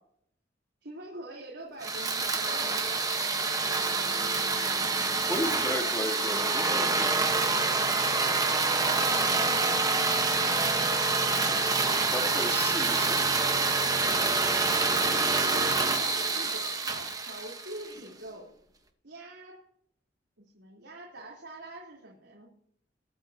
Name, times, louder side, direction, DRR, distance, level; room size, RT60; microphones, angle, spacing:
voice 1, 0.8-3.0 8.1-10.1 13.9-14.2 14.7-18.6 19.0-19.7 20.4-22.5, right 1 dB, 80° right, -4 dB, 3.9 m, -45 dB
sound 1, 1.8-18.0, right 3 dB, 20° right, 1.3 m, -27 dB
voice 2, 5.2-7.2 12.1-13.2, left 1 dB, 15° left, 0 dB, 3.1 m, -34 dB
23.0 x 9.3 x 2.9 m, 0.67 s
head